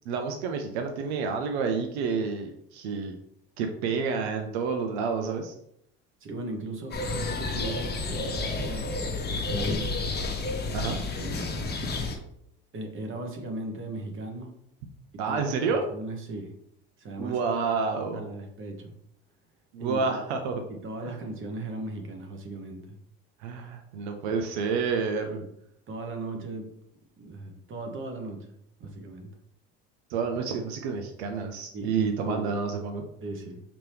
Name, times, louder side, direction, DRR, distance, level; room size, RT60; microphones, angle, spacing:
voice 1, 0.1-3.2 3.6-5.5 10.7-11.0 15.2-15.8 17.2-18.2 19.7-20.6 21.0-21.2 23.4-25.4 30.1-33.0, right 5 dB, 90° right, 5 dB, 0.6 m, -29 dB
voice 2, 6.2-8.9 9.2-9.9 11.1-11.7 12.7-14.5 15.3-16.5 17.0-17.4 18.1-19.0 19.8-20.0 20.7-23.0 25.3-25.4 25.9-26.7 27.2-28.5 28.8-29.3 31.7-32.5 33.2-33.6, right 2 dB, 40° right, 3 dB, 1.2 m, -37 dB
sound 1, 6.9-12.2, left 3 dB, 30° left, 1.0 m, -30 dB
5.1 x 2.9 x 3.4 m, 0.75 s
supercardioid pair, 95°, 31 cm